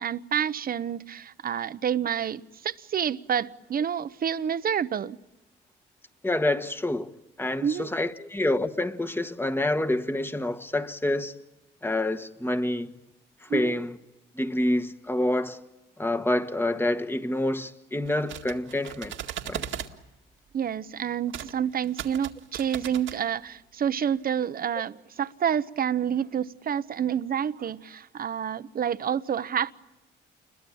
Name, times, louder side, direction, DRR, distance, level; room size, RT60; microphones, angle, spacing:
voice 1, 0.0-5.2 7.6-7.9 13.5-13.9 20.5-29.7, right 8 dB, 45° right, 0.9 m, -28 dB
voice 2, 6.2-7.1 7.4-11.3 11.8-12.9 13.4-14.0 14.3-15.6 16.0-19.1 19.5-19.6, left 1 dB, 10° left, 1.5 m, -27 dB
sound 1, 18.0-19.9 21.3-21.5 21.8-23.2, right 10 dB, 80° right, 2.0 m, -37 dB
29.0 x 22.0 x 8.6 m
cardioid pair, 90°, 20 cm